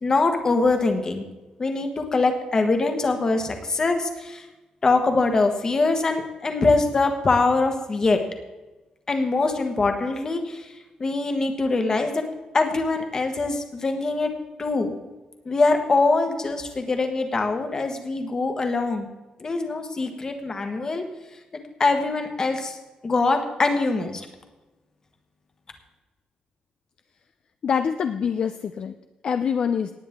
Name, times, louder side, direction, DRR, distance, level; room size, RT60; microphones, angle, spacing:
voice 1, 0.0-1.3 1.6-4.4 4.8-8.2 9.1-10.7 11.0-12.2 12.5-14.3 14.6-15.0 15.4-19.1 19.4-21.0 21.8-22.8 23.0-24.3, left 3 dB, 25° left, 5 dB, 1.4 m, -23 dB
voice 2, 27.6-29.0 29.2-29.9, left 7 dB, 45° left, 8 dB, 0.5 m, -25 dB
18.5 x 9.1 x 3.7 m, 1.1 s
wide cardioid pair, 170°, 2 cm